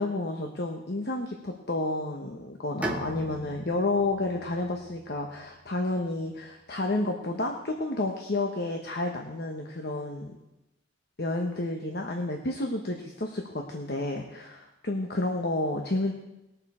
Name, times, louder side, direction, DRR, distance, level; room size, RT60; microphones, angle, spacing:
voice 1, 0.0-10.4 11.2-16.1, left 2 dB, 55° left, 2 dB, 1.1 m, -30 dB
Bowed string instrument, 2.8-6.4, right 1 dB, 10° right, 0.9 m, -40 dB
20.5 x 6.9 x 4.3 m, 0.94 s
head